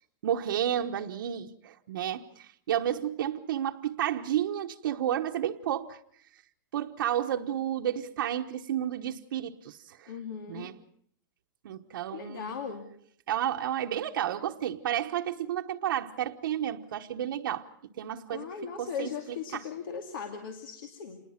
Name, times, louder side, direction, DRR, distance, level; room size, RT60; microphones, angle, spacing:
voice 1, 0.2-6.0 6.7-10.1 10.5-10.7 11.6-12.5 13.3-17.7 18.0-18.5 18.8-19.6, right 10 dB, 80° right, 1.1 m, -31 dB
voice 2, 10.1-10.7 12.1-12.9 18.3-21.2, left 7 dB, 80° left, 2.5 m, -38 dB
27.5 x 20.5 x 5.8 m
supercardioid pair, 175°, 11 cm